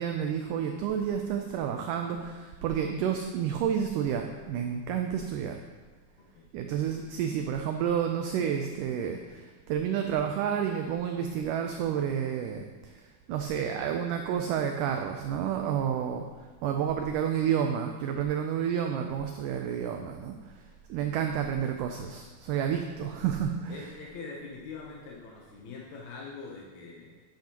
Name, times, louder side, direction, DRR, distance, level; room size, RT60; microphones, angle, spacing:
voice 1, 0.0-5.6 6.5-13.0 13.3-16.3 16.6-20.5 20.9-23.8, right 8 dB, 90° right, 4 dB, 1.8 m, -30 dB
voice 2, 23.7-27.2, left 4 dB, 70° left, -2 dB, 1.8 m, -43 dB
10.0 x 8.1 x 2.9 m, 1.4 s
omnidirectional pair, 4.3 m